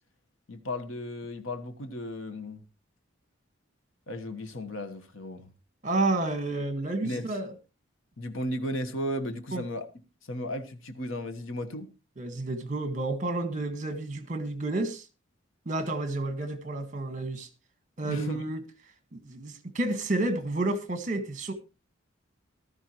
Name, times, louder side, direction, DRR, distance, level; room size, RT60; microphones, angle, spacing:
voice 1, 0.5-2.6 4.1-5.5 7.0-7.3 8.2-9.9 10.3-11.9 18.1-18.4, left 1 dB, 80° left, 1.3 m, -35 dB
voice 2, 5.8-7.5 9.5-9.6 12.2-15.1 15.6-17.5 18.0-18.6 19.1-21.5, right 2 dB, 40° right, 1.7 m, -30 dB
15.0 x 12.5 x 3.0 m
head